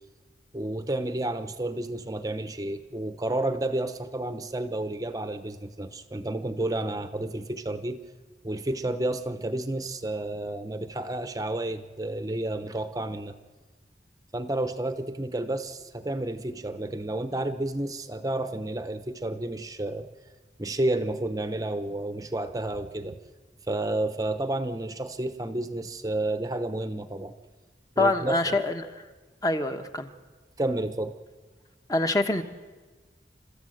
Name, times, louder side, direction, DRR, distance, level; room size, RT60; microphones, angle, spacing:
voice 1, 0.5-8.0 8.4-13.3 14.3-20.1 20.6-23.2 23.7-27.3 28.0-28.6 30.6-31.1, right 1 dB, 20° right, 9 dB, 0.8 m, -31 dB
voice 2, 28.0-29.0 29.4-30.1 31.9-32.4, left 2 dB, 20° left, 7 dB, 1.1 m, -25 dB
30.0 x 13.5 x 7.8 m, 1.3 s
head